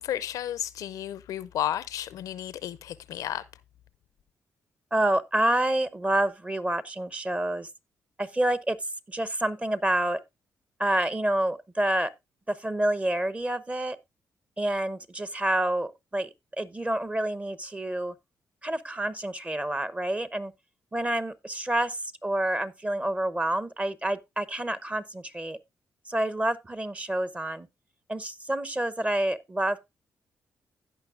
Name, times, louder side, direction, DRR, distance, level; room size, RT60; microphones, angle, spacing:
voice 1, 0.0-3.4, left 11 dB, 85° left, 0.5 m, -32 dB
voice 2, 4.9-7.7 8.2-8.8 9.1-10.2 10.8-12.1 12.5-14.0 14.6-16.3 16.6-18.1 18.6-20.5 20.9-25.6 26.1-27.7 28.1-29.9, right 1 dB, 20° right, 0.8 m, -28 dB
16.0 x 5.5 x 2.4 m
cardioid pair, 65°, 6 cm